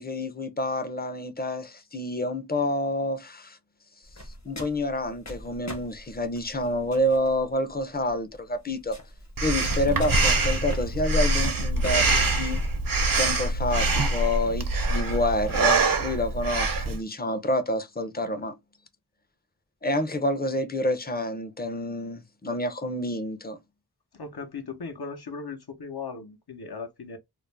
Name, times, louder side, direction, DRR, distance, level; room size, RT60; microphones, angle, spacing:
voice 1, 0.0-3.6 4.5-9.0 9.4-12.6 13.2-18.5 19.8-23.6, left 1 dB, 25° left, 0.5 m, -28 dB
sound 1, 4.0-11.9, left 1 dB, 45° left, 0.9 m, -43 dB
Breathing, 9.4-17.0, right 2 dB, 60° right, 0.6 m, -24 dB
voice 2, 24.1-27.2, left 4 dB, 70° left, 0.8 m, -37 dB
2.5 x 2.0 x 3.1 m
wide cardioid pair, 40°, 40 cm